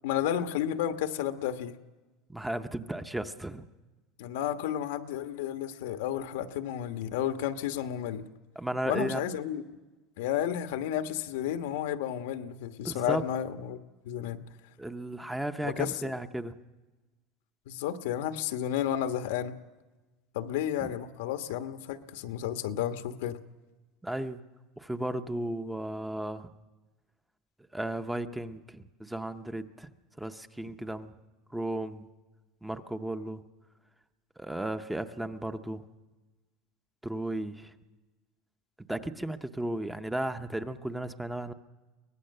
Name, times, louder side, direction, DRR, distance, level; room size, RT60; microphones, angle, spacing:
voice 1, 0.0-1.7 4.2-8.2 8.8-9.6 10.2-13.8 14.0-14.4 15.6-16.1 17.7-19.6 20.3-23.4, left 10 dB, 85° left, 8 dB, 1.2 m, -32 dB
voice 2, 2.3-3.7 8.6-9.2 12.8-13.2 14.8-16.5 20.8-20.9 24.0-24.4 24.8-26.5 27.7-29.9 30.2-31.1 31.5-32.1 32.6-33.4 34.4-35.8 37.0-37.7 38.9-41.5, right 1 dB, 5° right, 9 dB, 0.6 m, -34 dB
23.5 x 18.5 x 6.6 m, 1.2 s
cardioid pair, 170°, 0 cm